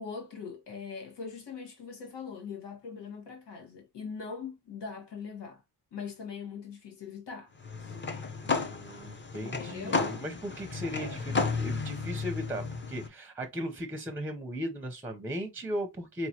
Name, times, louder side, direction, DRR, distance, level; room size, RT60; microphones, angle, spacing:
voice 1, 0.0-5.6 5.9-7.5 7.8-8.0 8.7-8.8 9.4-10.1 11.0-11.2, left 5 dB, 85° left, 1.6 m, -41 dB
sound 1, 7.6-13.1, left 4 dB, 30° left, 0.7 m, -33 dB
voice 2, 8.4-16.3, equal, 5° right, 0.6 m, -37 dB
4.4 x 3.0 x 2.8 m
wide cardioid pair, 160°, 41 cm